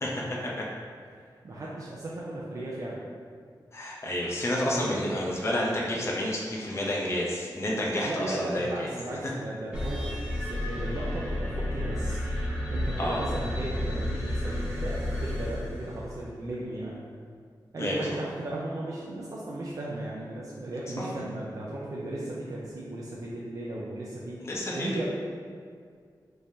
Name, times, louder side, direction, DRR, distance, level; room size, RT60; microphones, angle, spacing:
voice 1, 0.0-0.7 3.7-8.9 13.0-13.2 17.8-18.1 21.0-21.1 24.4-25.0, left 1 dB, 35° left, -4 dB, 0.7 m, -30 dB
voice 2, 1.2-3.0 4.6-5.4 8.0-12.2 12.7-17.0 17.7-24.4 24.7-25.0, right 1 dB, 45° right, -5 dB, 0.5 m, -36 dB
sound 1, 9.7-16.3, left 1 dB, 15° right, 1.3 m, -31 dB
5.2 x 3.3 x 2.7 m, 2.1 s
wide cardioid pair, 135°, 8 cm